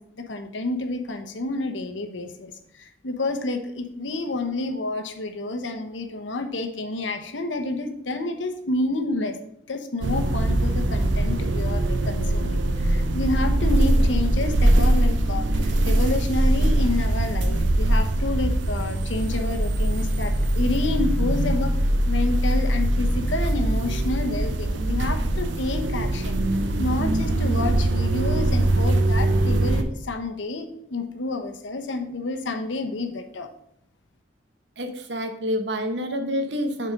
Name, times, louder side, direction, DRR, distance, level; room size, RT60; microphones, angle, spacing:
voice 1, 0.0-9.4 9.7-26.4 26.8-33.5, left 2 dB, 90° left, 7 dB, 0.9 m, -29 dB
sound 1, 10.0-29.8, right 1 dB, 85° right, 0.7 m, -22 dB
voice 2, 34.8-36.9, equal, 70° right, 6 dB, 1.0 m, -28 dB
6.8 x 4.4 x 5.1 m, 0.74 s
head